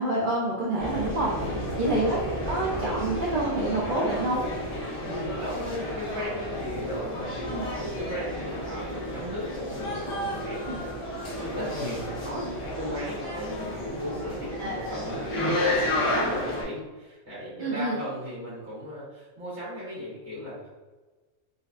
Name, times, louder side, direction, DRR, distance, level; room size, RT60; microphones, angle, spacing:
voice 1, 0.0-1.3 1.7-4.4 7.5-7.6 10.7-10.8 14.6-15.0 17.6-18.0, right 2 dB, 55° right, -6 dB, 0.6 m, -27 dB
sound 1, 0.8-16.6, left 1 dB, 40° left, 0.4 m, -31 dB
voice 2, 1.4-2.0 5.0-20.7, equal, 70° right, -10 dB, 1.7 m, -37 dB
4.0 x 2.1 x 2.5 m, 1.3 s
omnidirectional pair, 1.5 m